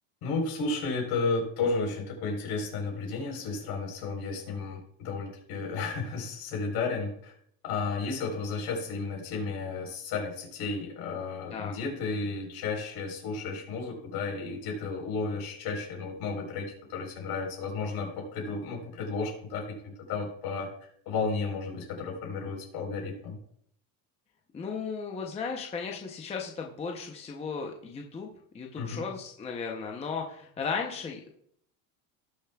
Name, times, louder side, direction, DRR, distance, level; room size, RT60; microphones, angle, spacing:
voice 1, 0.2-7.4 7.6-20.7 21.1-23.4 28.7-29.0, left 4 dB, 60° left, 1 dB, 4.0 m, -33 dB
voice 2, 24.5-28.3 28.5-31.3, left 5 dB, 15° left, 1 dB, 0.6 m, -35 dB
18.0 x 6.8 x 2.3 m, 0.67 s
cardioid pair, 155°, 44 cm